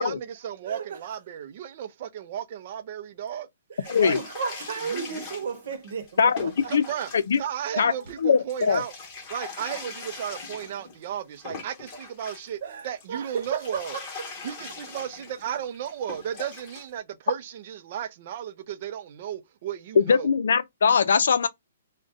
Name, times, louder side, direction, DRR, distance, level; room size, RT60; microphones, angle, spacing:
voice 1, 0.0-3.5 4.0-4.2 4.8-5.2 6.7-7.1 7.4-8.9 9.3-14.0 14.4-20.3, right 9 dB, 45° right, 0.5 m, -34 dB
voice 2, 0.7-1.0 3.7-6.7 12.6-14.1, right 6 dB, 60° right, 0.9 m, -34 dB
sound 1, 3.8-12.5 12.8-16.9, left 4 dB, 30° left, 1.2 m, -41 dB
voice 3, 6.2-6.8 7.3-7.4 7.8-7.9 8.2-8.8 20.0-21.5, left 6 dB, 75° left, 0.5 m, -21 dB
2.5 x 2.1 x 3.6 m
hypercardioid pair, 150°, 0 cm